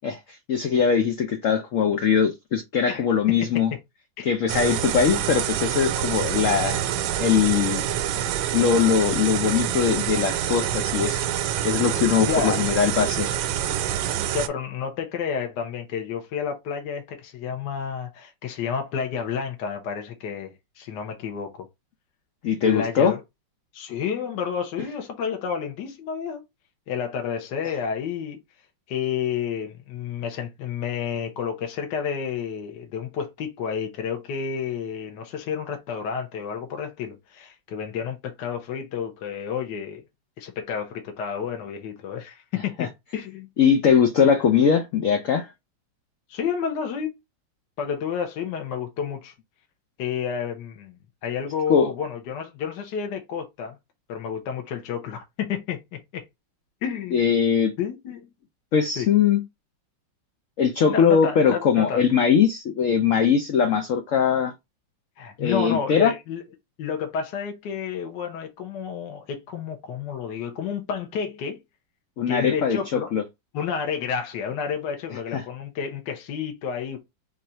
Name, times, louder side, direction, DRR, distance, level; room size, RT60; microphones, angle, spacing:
voice 1, 0.0-3.7 4.2-6.8 7.2-7.9 8.5-11.2 11.6-13.3 22.4-23.1 42.8-42.9 43.6-45.5 51.7-51.9 57.1-57.7 58.7-59.4 60.6-64.5 65.4-66.1 72.2-73.2 75.3-75.4, left 7 dB, 90° left, 0.6 m, -21 dB
voice 2, 2.8-3.5 4.2-4.3 12.2-12.7 14.3-21.7 22.6-23.2 23.7-26.4 26.9-28.4 28.9-40.0 40.4-43.5 46.3-47.2 47.8-49.3 50.0-53.8 54.1-56.2 56.8-57.3 57.8-58.3 59.0-59.1 60.9-62.1 65.2-66.4 66.8-71.6 72.3-73.1 73.5-77.0, left 7 dB, 65° left, 1.5 m, -30 dB
sound 1, 4.5-14.5, right 10 dB, 85° right, 1.4 m, -26 dB
4.1 x 2.5 x 4.3 m
omnidirectional pair, 2.1 m